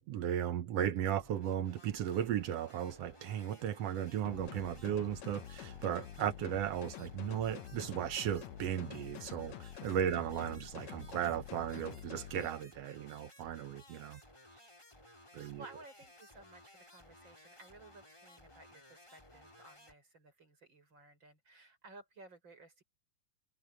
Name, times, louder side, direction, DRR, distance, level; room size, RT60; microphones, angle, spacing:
voice 1, 0.0-14.2 15.3-15.6, right 10 dB, 70° right, 1.5 m, -36 dB
sound 1, 0.9-19.9, left 1 dB, 10° left, 3.5 m, -59 dB
sound 2, 4.2-12.5, left 11 dB, 65° left, 2.0 m, -48 dB
voice 2, 9.9-10.2 15.4-22.8, right 2 dB, 35° right, 6.7 m, -57 dB
omnidirectional pair, 3.8 m